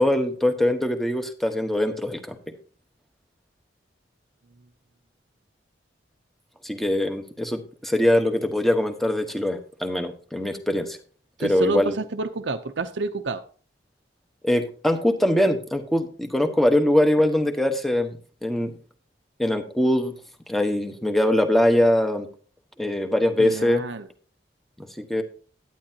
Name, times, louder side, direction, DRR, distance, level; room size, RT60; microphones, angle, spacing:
voice 1, 0.0-2.4 6.6-11.0 11.4-11.9 14.4-18.2 18.4-18.8 19.4-20.1 20.5-22.3 22.8-23.8 24.8-25.2, left 1 dB, ahead, 6 dB, 1.3 m, -22 dB
voice 2, 11.4-13.4 23.4-24.1, right 3 dB, 90° right, 8 dB, 0.8 m, -29 dB
11.5 x 10.0 x 2.9 m, 0.40 s
head